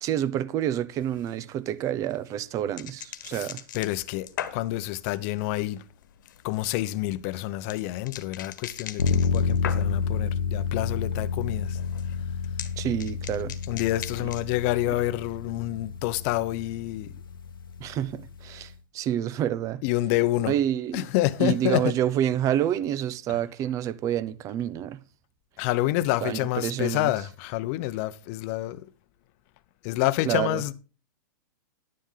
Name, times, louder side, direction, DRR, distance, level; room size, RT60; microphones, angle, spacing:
voice 1, 0.0-3.6 12.8-13.5 17.8-19.8 20.5-21.1 21.4-25.0 26.2-27.1 30.2-30.6, right 10 dB, 30° right, 0.8 m, -28 dB
sound 1, 0.9-10.2 10.5-11.1 11.4-14.7, left 10 dB, 70° left, 1.5 m, -41 dB
voice 2, 3.7-5.8 6.4-11.8 13.7-17.1 19.8-20.5 20.9-21.9 23.3-23.4 25.6-28.8 29.8-30.7, left 16 dB, 45° left, 0.8 m, -28 dB
sound 2, 9.0-18.7, left 6 dB, 90° left, 1.1 m, -30 dB
11.0 x 10.0 x 3.8 m
hypercardioid pair, 130°, 11 cm